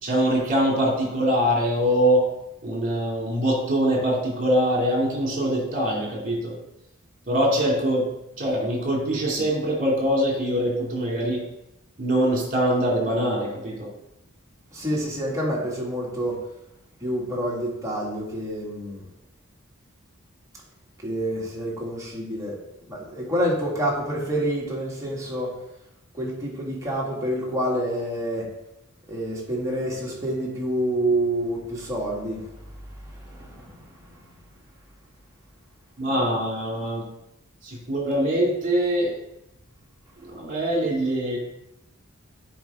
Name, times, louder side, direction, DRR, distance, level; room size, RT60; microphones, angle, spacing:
voice 1, 0.0-2.2 2.6-6.5 7.3-8.0 8.4-11.4 12.0-13.9 36.0-37.0 37.6-39.1 40.2-41.4, equal, 40° right, -2 dB, 2.5 m, -23 dB
voice 2, 14.7-16.4 17.0-19.0 21.0-22.5 22.9-25.5 26.1-28.5 29.1-32.5 33.1-33.8, right 1 dB, 15° right, -4 dB, 1.7 m, -27 dB
8.9 x 4.7 x 3.6 m, 0.88 s
head